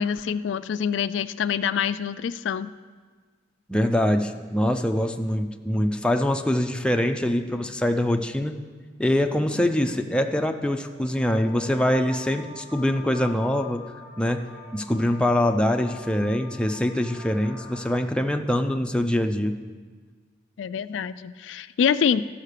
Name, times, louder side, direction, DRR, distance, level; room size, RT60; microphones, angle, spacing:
voice 1, 0.0-2.7 20.6-22.2, left 7 dB, 80° left, 14 dB, 0.3 m, -25 dB
voice 2, 3.7-8.5 9.0-13.9 14.2-19.6, left 1 dB, 5° left, 5 dB, 0.5 m, -24 dB
sound 1, 8.7-18.0, left 4 dB, 20° right, 3.7 m, -45 dB
14.0 x 5.7 x 6.6 m, 1.5 s
head